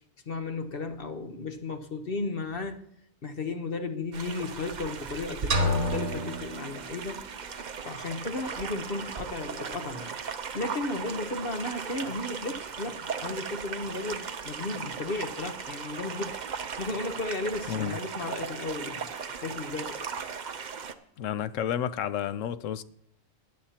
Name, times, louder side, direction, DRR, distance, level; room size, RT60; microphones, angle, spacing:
voice 1, 0.3-2.8 3.2-7.2 7.5-10.1 10.5-20.1, left 3 dB, 45° left, 1.1 m, -34 dB
sound 1, 4.1-20.9, right 6 dB, 45° right, 0.7 m, -37 dB
sound 2, 5.5-7.4, equal, 60° right, 1.9 m, -29 dB
voice 2, 21.2-22.8, left 9 dB, 75° left, 0.9 m, -31 dB
17.0 x 10.5 x 2.9 m
omnidirectional pair, 1.4 m